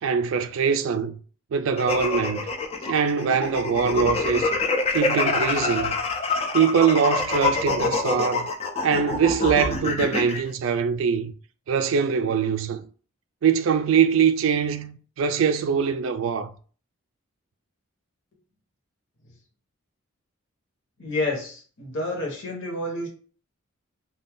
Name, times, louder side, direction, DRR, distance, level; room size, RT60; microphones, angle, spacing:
voice 1, 0.0-1.2 1.5-2.5 2.8-4.5 4.9-5.9 6.5-8.5 8.8-11.3 11.7-12.8 13.4-16.5, right 6 dB, 70° right, 0.3 m, -23 dB
sound 1, 1.8-10.4, left 3 dB, 30° left, 0.4 m, -26 dB
voice 2, 21.0-23.1, left 2 dB, 60° left, 0.9 m, -29 dB
2.6 x 2.3 x 3.5 m
head